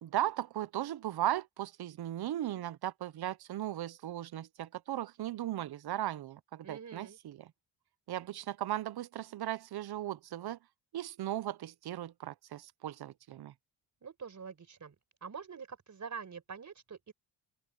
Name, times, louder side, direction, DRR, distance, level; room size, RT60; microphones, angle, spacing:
voice 1, 0.0-7.5 8.1-10.6 10.9-13.5, right 13 dB, 60° right, 0.9 m, -37 dB
voice 2, 6.6-7.2 14.0-14.9 15.2-17.1, right 6 dB, 40° right, 4.8 m, -45 dB
open air
cardioid pair, 90°, 43 cm